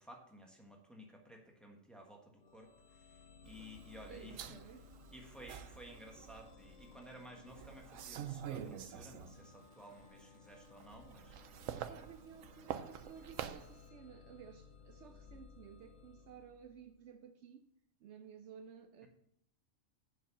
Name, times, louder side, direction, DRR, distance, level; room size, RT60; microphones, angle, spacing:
voice 1, 0.0-4.6 5.1-11.4, equal, ahead, 1.3 m, -55 dB
sound 1, 2.4-17.1, left 5 dB, 75° left, 1.2 m, -60 dB
sound 2, 3.5-6.9 7.4-9.6 10.0-13.8, right 9 dB, 85° right, 1.0 m, -47 dB
voice 2, 4.1-4.9 11.7-17.7 18.0-19.1, right 8 dB, 70° right, 0.8 m, -55 dB
7.5 x 5.6 x 7.1 m
omnidirectional pair, 1.3 m